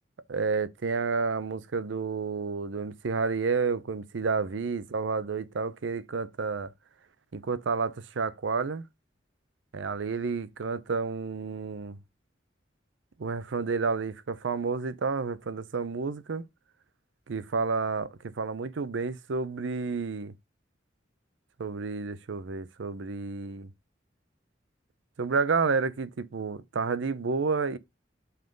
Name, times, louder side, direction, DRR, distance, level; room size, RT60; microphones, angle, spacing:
voice 1, 0.3-6.7 7.3-8.8 9.7-12.0 13.2-16.5 17.3-20.3 21.6-23.7 25.2-27.8, right 4 dB, 80° right, 0.6 m, -30 dB
5.5 x 3.8 x 5.1 m
head